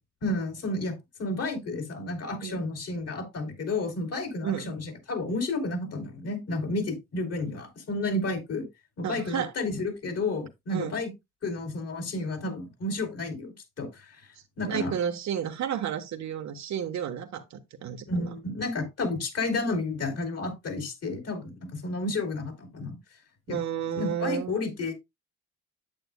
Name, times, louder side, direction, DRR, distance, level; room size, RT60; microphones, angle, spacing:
voice 1, 0.2-8.7 9.0-11.1 11.4-14.2 14.6-14.9 18.1-23.0 23.5-23.6 23.9-24.9, left 2 dB, 55° left, 3.3 m, -31 dB
voice 2, 9.0-9.5 10.7-11.0 14.6-18.3 23.5-24.6, right 9 dB, 65° right, 1.2 m, -32 dB
8.9 x 7.8 x 2.2 m
cardioid pair, 90°, 30 cm